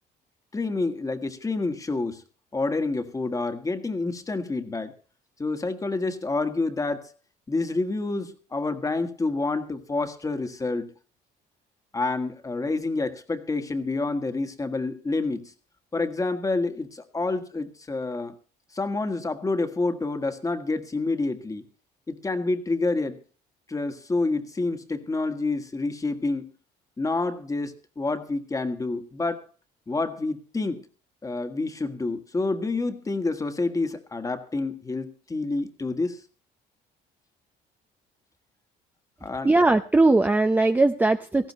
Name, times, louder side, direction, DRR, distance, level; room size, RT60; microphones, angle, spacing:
voice 1, 0.5-2.2 2.5-4.9 5.4-7.1 7.5-10.9 11.9-15.5 15.9-18.3 18.7-21.7 22.1-23.2 23.7-26.5 27.0-29.5 29.9-30.9 31.2-36.2 39.2-39.5, left 3 dB, 20° left, 8 dB, 1.6 m, -28 dB
voice 2, 39.4-41.5, right 2 dB, 10° right, 7 dB, 0.6 m, -20 dB
18.0 x 15.0 x 3.1 m, 0.37 s
cardioid pair, 110°, 17 cm